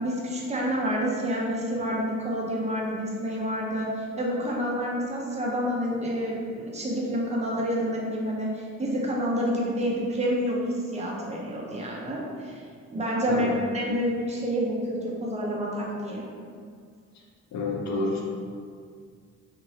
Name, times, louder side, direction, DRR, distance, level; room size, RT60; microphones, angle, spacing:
voice 1, 0.0-12.6 12.9-16.2, equal, 20° right, -3 dB, 0.7 m, -28 dB
voice 2, 17.5-18.2, left 2 dB, 65° left, -1 dB, 0.6 m, -29 dB
2.9 x 2.6 x 2.9 m, 2.1 s
cardioid pair, 90°, 30 cm